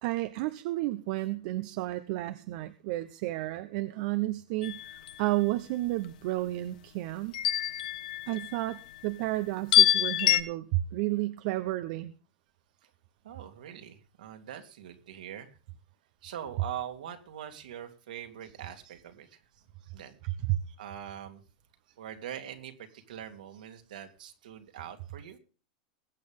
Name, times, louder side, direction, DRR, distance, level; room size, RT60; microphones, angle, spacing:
voice 1, 0.0-7.3 8.3-12.1 20.2-20.6, right 17 dB, 60° right, 11 dB, 1.0 m, -32 dB
sound 1, 4.6-5.2 7.3-8.7 9.7-10.4, left 11 dB, 70° left, 1.6 m, -25 dB
voice 2, 13.2-15.6 16.2-20.4 20.7-21.4 22.0-25.4, right 10 dB, 80° right, 5 dB, 3.0 m, -43 dB
22.0 x 8.6 x 3.6 m, 0.36 s
hypercardioid pair, 110°, 4 cm